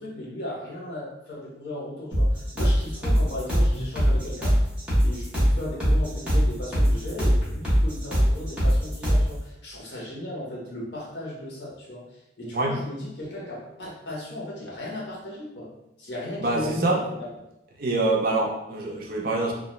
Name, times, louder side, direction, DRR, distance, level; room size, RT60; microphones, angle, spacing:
voice 1, 0.0-4.6 5.0-15.7 16.0-17.3, left 1 dB, 75° left, -4 dB, 0.9 m, -36 dB
sound 1, 2.1-9.3, equal, 5° right, 0.8 m, -21 dB
voice 2, 16.4-17.0 17.8-19.5, right 2 dB, 50° right, 0 dB, 0.4 m, -25 dB
2.3 x 2.1 x 2.9 m, 0.89 s
head